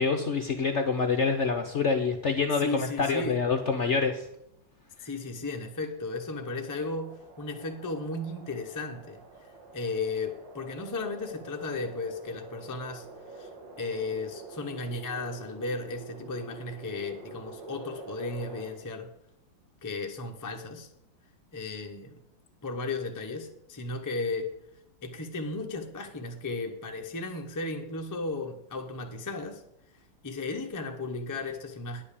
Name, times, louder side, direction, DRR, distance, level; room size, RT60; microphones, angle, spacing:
voice 1, 0.0-4.3, left 4 dB, 60° left, 6 dB, 0.7 m, -26 dB
voice 2, 2.6-3.4 5.0-9.2 9.7-13.1 13.3-13.5 13.8-19.1 19.8-20.9 21.5-22.2 22.6-24.5 25.0-29.6 30.2-32.0, left 3 dB, 25° left, 3 dB, 0.4 m, -35 dB
sound 1, 5.6-18.7, right 3 dB, 70° right, 2.3 m, -47 dB
10.0 x 5.6 x 8.3 m, 0.81 s
omnidirectional pair, 2.1 m